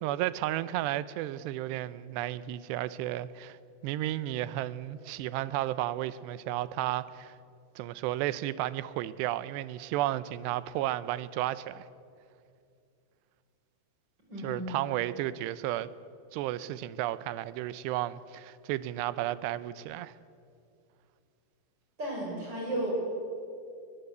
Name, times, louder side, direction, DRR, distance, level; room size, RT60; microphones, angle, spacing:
voice 1, 0.0-3.6 3.8-7.3 7.8-11.9 14.4-15.9 16.3-20.1, right 14 dB, 85° right, 2.8 m, -33 dB
voice 2, 14.3-14.8 22.0-22.9, right 1 dB, 25° right, 6.8 m, -34 dB
23.0 x 21.0 x 8.1 m
omnidirectional pair, 4.9 m